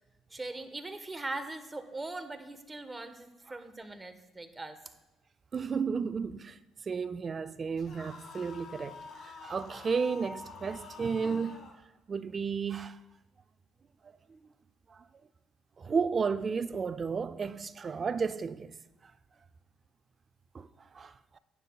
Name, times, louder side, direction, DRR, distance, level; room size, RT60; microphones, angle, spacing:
voice 1, 0.3-4.8, right 2 dB, 20° right, 1.3 m, -40 dB
voice 2, 5.5-6.6 6.9-9.0 9.2-11.6 12.1-13.0 14.3-14.4 14.9-15.0 15.8-18.7 20.5-20.7 20.9-21.4, right 5 dB, 40° right, 0.6 m, -33 dB
sound 1, 7.8-11.8, left 4 dB, 60° left, 2.3 m, -47 dB
19.0 x 9.9 x 2.4 m
supercardioid pair, 70°, 0 cm